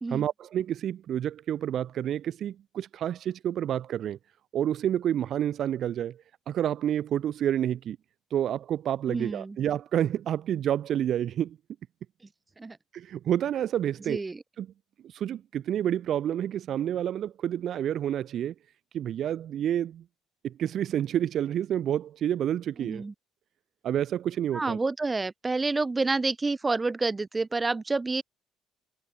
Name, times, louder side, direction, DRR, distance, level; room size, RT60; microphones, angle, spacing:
voice 1, 0.1-4.2 4.5-6.2 6.5-8.0 8.3-11.6 12.9-14.2 14.6-14.7 15.1-18.5 18.9-20.0 20.4-23.0 23.8-24.8, right 10 dB, 55° right, 0.7 m, -29 dB
voice 2, 9.1-9.6 12.6-12.8 14.1-14.4 22.8-23.1 24.5-28.2, right 3 dB, 20° right, 0.5 m, -28 dB
cardioid pair, 105°, 0 cm